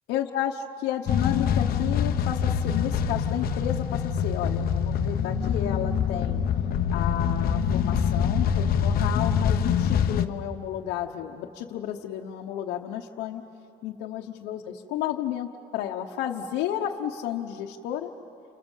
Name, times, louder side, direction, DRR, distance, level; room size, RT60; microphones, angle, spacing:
voice 1, 0.1-6.4 6.9-13.4 13.8-18.1, left 10 dB, 90° left, -1 dB, 1.2 m, -32 dB
sound 1, 1.1-10.3, left 7 dB, 60° left, 1.0 m, -25 dB
30.0 x 27.0 x 7.4 m, 3.0 s
cardioid pair, 110°, 17 cm